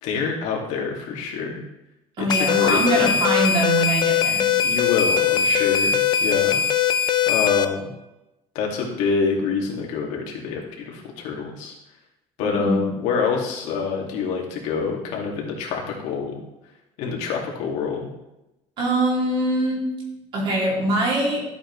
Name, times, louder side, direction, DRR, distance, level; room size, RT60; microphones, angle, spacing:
voice 1, 0.0-1.6 2.2-3.2 4.6-6.7 7.3-7.9 8.5-11.7 12.4-16.4 17.0-18.1, left 5 dB, 75° left, -1 dB, 2.3 m, -26 dB
voice 2, 2.2-4.5 12.4-12.8 18.8-19.8 20.3-21.4, right 2 dB, 45° right, -3 dB, 3.0 m, -23 dB
sound 1, 2.3-7.6, left 8 dB, 35° left, 0.5 m, -20 dB
13.0 x 8.3 x 3.3 m, 0.92 s
cardioid pair, 180°, 12 cm